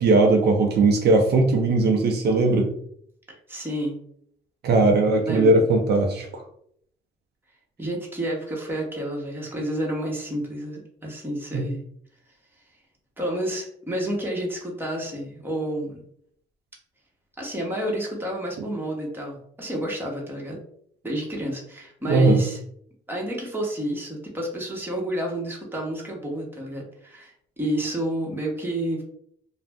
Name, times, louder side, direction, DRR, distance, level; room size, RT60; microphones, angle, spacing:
voice 1, 0.0-2.7 4.6-6.4 11.5-11.6 22.1-22.4, right 2 dB, 60° right, 3 dB, 0.5 m, -19 dB
voice 2, 3.5-4.0 5.2-5.7 7.8-11.8 13.2-16.0 17.4-20.6 21.0-22.6 23.1-29.0, right 1 dB, 10° right, -1 dB, 0.9 m, -30 dB
2.4 x 2.1 x 3.3 m, 0.66 s
cardioid pair, 95°, 19 cm